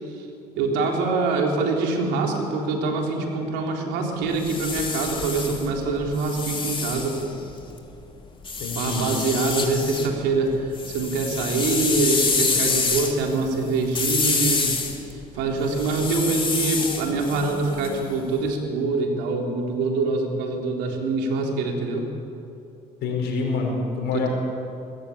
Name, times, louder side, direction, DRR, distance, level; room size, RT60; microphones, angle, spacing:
voice 1, 0.6-7.3 8.7-14.9 15.3-22.1 24.1-24.3, right 3 dB, 85° right, 1 dB, 3.9 m, -25 dB
sound 1, 4.2-7.8 8.5-10.1 10.5-18.4, left 4 dB, 30° left, 3.5 m, -27 dB
voice 2, 8.6-9.1 23.0-24.3, left 4 dB, 75° left, 1 dB, 5.9 m, -26 dB
20.5 x 17.5 x 8.6 m, 2.6 s
supercardioid pair, 70°, 17 cm